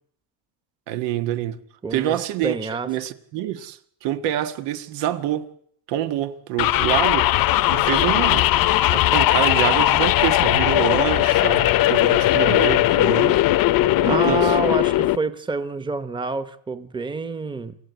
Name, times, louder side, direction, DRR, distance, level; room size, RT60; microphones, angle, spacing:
voice 1, 0.9-1.6 1.9-2.5 2.9-5.5 5.9-7.3 7.7-8.5 8.9-13.4 14.0-14.6, right 12 dB, 85° right, 1.8 m, -26 dB
voice 2, 1.8-2.2 2.4-2.9 14.0-17.8, right 3 dB, 10° right, 1.1 m, -27 dB
sound 1, 6.6-15.2, left 15 dB, 55° left, 0.8 m, -18 dB
27.5 x 14.5 x 8.2 m
cardioid pair, 145°, 41 cm